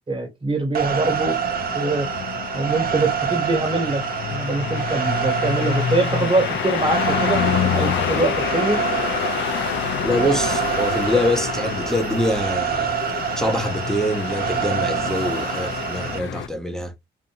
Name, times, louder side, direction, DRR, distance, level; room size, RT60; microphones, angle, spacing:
voice 1, 0.1-1.4 1.7-2.1 2.5-4.0 4.3-8.8, right 2 dB, 25° right, 1.3 m, -23 dB
sound 1, 0.7-16.2, right 8 dB, 50° right, 0.6 m, -27 dB
sound 2, 0.8-16.5, left 10 dB, 65° left, 0.4 m, -27 dB
voice 2, 10.0-13.0 13.4-16.9, left 1 dB, 5° left, 0.6 m, -24 dB
2.7 x 2.6 x 2.5 m
cardioid pair, 90°, 20 cm